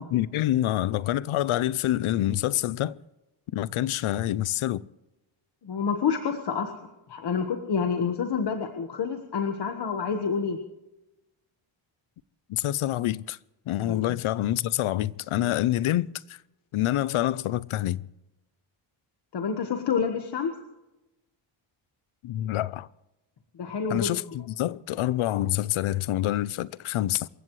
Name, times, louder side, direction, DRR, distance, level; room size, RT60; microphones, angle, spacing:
voice 1, 0.0-3.0 3.5-4.8 12.5-13.4 13.7-16.1 16.7-18.0 22.2-22.9 23.9-27.3, left 13 dB, 75° left, 0.7 m, -26 dB
voice 2, 5.6-6.7 7.1-10.6 13.8-14.0 19.3-20.5 23.6-24.1, left 6 dB, 50° left, 1.5 m, -28 dB
27.5 x 15.0 x 3.2 m
wide cardioid pair, 170°, 50 cm